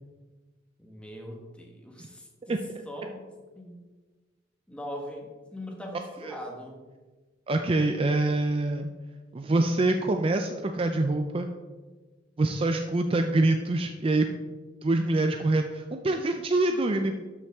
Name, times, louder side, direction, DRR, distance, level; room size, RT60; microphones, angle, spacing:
voice 1, 0.8-2.6 2.8-3.2 3.5-3.8 4.7-6.8, equal, 5° left, 1 dB, 1.3 m, -41 dB
voice 2, 2.4-2.8 5.9-6.4 7.5-8.9 9.3-11.5 12.4-14.3 14.8-17.1, right 2 dB, 30° right, 5 dB, 0.4 m, -25 dB
12.5 x 5.5 x 3.5 m, 1.3 s
head